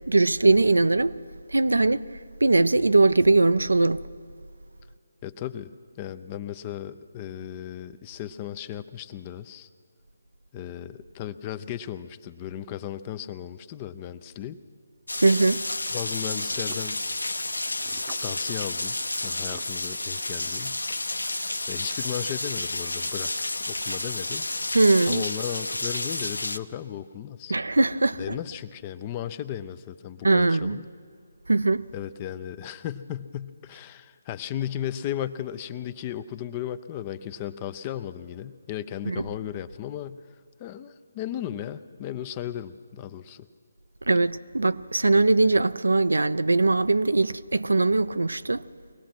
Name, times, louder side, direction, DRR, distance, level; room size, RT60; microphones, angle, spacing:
voice 1, 0.1-1.1 1.5-2.0 2.4-4.1 15.2-15.6 24.7-25.2 27.5-28.3 30.2-30.8 31.5-31.8 39.1-39.2 44.1-48.6, right 3 dB, 80° right, 0.5 m, -21 dB
voice 2, 5.2-5.7 6.0-9.7 10.5-14.6 15.9-17.0 18.2-19.0 19.2-20.8 21.7-24.5 25.1-27.5 28.2-30.9 31.9-40.2 40.6-43.5, left 11 dB, 25° left, 0.6 m, -35 dB
Rain, 15.1-26.6, left 2 dB, 85° left, 0.7 m, -31 dB
sound 1, 16.3-16.8 17.7-18.2 19.0-19.7, right 9 dB, 30° right, 0.8 m, -46 dB
23.5 x 18.0 x 6.1 m
figure-of-eight pair, 150°, 0 cm